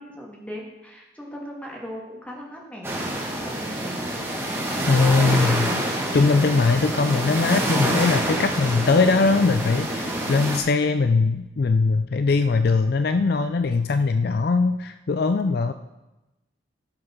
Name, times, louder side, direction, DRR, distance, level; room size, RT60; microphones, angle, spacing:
voice 1, 0.0-4.5, equal, 5° left, -1 dB, 1.9 m, -39 dB
sound 1, 2.8-10.6, right 1 dB, 15° right, 1.8 m, -26 dB
voice 2, 4.9-5.8 6.1-15.7, left 4 dB, 50° left, 10 dB, 0.4 m, -21 dB
13.5 x 5.5 x 5.9 m, 1.0 s
head